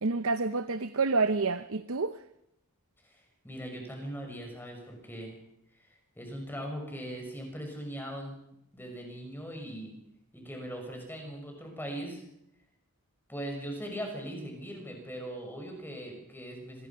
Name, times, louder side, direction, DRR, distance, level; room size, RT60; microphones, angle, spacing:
voice 1, 0.0-2.2, right 3 dB, 70° right, 0.8 m, -28 dB
voice 2, 3.4-5.3 5.8-8.4 8.7-9.9 10.3-12.2 13.3-16.9, equal, 10° left, 6.1 m, -40 dB
26.5 x 21.5 x 5.8 m
head